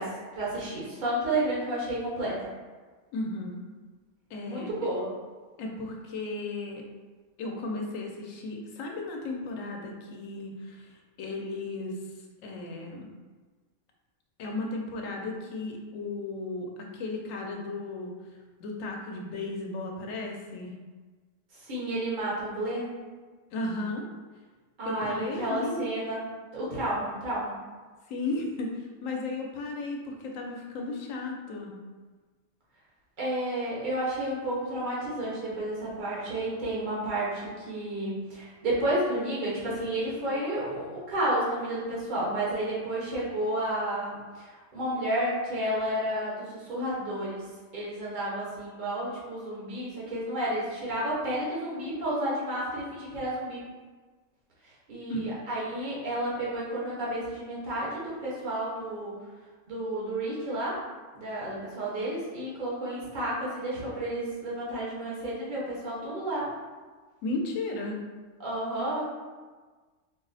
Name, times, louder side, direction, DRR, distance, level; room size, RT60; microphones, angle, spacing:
voice 1, 0.0-2.5 4.5-5.1 21.6-22.9 24.8-26.2 26.5-27.6 33.2-47.5 47.7-53.6 54.9-59.1 59.7-60.8 61.1-66.5 68.4-69.0, right 1 dB, 40° right, -7 dB, 1.2 m, -31 dB
voice 2, 3.1-3.6 4.3-4.7 5.6-6.8 7.4-12.0 12.4-13.1 14.4-18.1 18.6-20.7 23.5-24.1 24.8-25.9 28.1-31.8 55.1-55.4 67.2-68.0, left 2 dB, 85° left, 1 dB, 1.0 m, -35 dB
4.1 x 2.0 x 4.0 m, 1.4 s
omnidirectional pair, 1.3 m